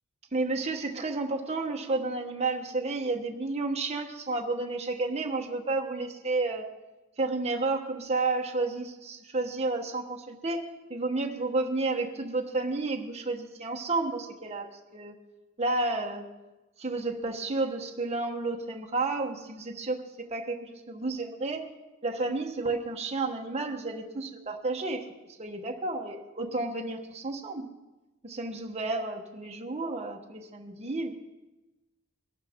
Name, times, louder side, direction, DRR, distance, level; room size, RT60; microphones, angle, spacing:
voice 1, 0.3-6.7 7.2-15.2 15.6-16.3 16.8-20.0 20.3-21.7 22.0-25.1 25.4-27.7 28.2-31.1, right 3 dB, 30° right, 2 dB, 1.1 m, -31 dB
23.0 x 12.0 x 3.6 m, 1.1 s
head